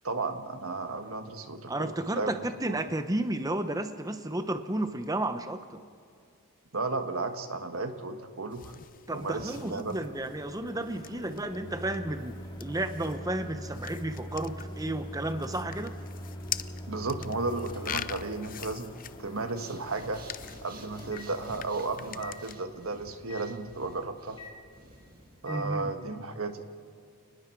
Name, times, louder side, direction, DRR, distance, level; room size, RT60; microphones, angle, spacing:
voice 1, 0.0-2.3 2.7-2.8 6.7-8.8 9.1-9.9 16.9-20.2 20.6-24.4 25.4-26.6, right 3 dB, 65° right, 7 dB, 1.5 m, -34 dB
voice 2, 1.7-5.8 9.1-16.0 25.5-25.9, right 1 dB, 15° right, 8 dB, 0.8 m, -32 dB
sound 1, 8.5-22.5, left 10 dB, 40° left, 0.5 m, -44 dB
Microwave oven, 9.1-25.6, equal, 20° left, 2.3 m, -44 dB
Breathing, 19.5-25.5, right 2 dB, 40° right, 1.9 m, -52 dB
29.5 x 20.0 x 4.6 m, 2.3 s
head